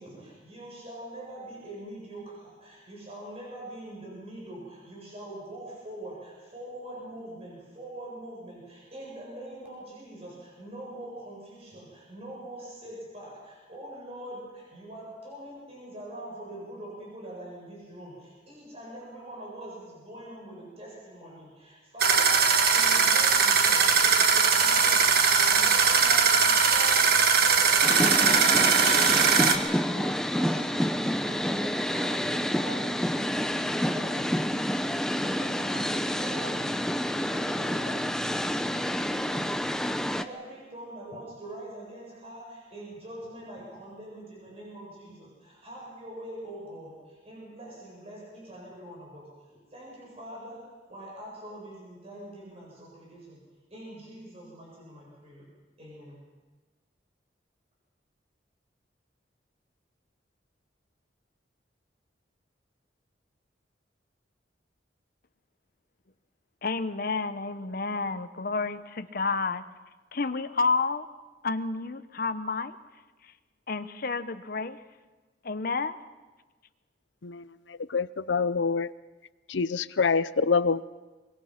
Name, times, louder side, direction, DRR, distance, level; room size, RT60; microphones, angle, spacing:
voice 1, 0.0-53.4 53.7-55.5 55.8-56.2, right 1 dB, 35° right, -3 dB, 7.6 m, -43 dB
sound 1, 22.0-29.6, right 5 dB, 55° right, 1.6 m, -21 dB
sound 2, 27.8-40.2, equal, 5° left, 0.6 m, -28 dB
voice 2, 66.6-69.6 70.1-71.1 71.4-72.8 73.7-74.8 75.4-76.0, left 4 dB, 55° left, 10 dB, 0.9 m, -30 dB
voice 3, 77.9-78.9 79.5-80.8, left 5 dB, 80° left, 16 dB, 0.7 m, -25 dB
24.0 x 22.5 x 5.9 m, 1.2 s
head